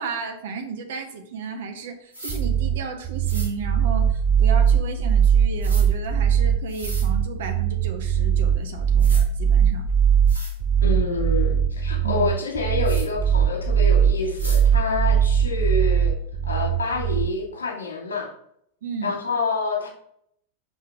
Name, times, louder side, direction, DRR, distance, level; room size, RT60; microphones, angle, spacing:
voice 1, 0.0-9.8 12.0-12.3 18.8-19.2, right 5 dB, 55° right, 5 dB, 1.3 m, -34 dB
sound 1, 2.1-2.4 3.2-3.5 5.6-5.8 6.7-7.1 8.5-8.6 9.0-9.2 9.9-10.0 10.3-10.5 12.8-13.1 14.4-14.6, right 1 dB, 85° right, 1.9 m, -36 dB
sound 2, 2.3-17.3, right 8 dB, 25° right, 0.7 m, -20 dB
voice 2, 10.8-16.1 16.5-18.3 19.0-19.9, left 3 dB, 70° left, -1 dB, 2.7 m, -27 dB
5.5 x 5.5 x 5.9 m, 0.70 s
figure-of-eight pair, 90°, 0 cm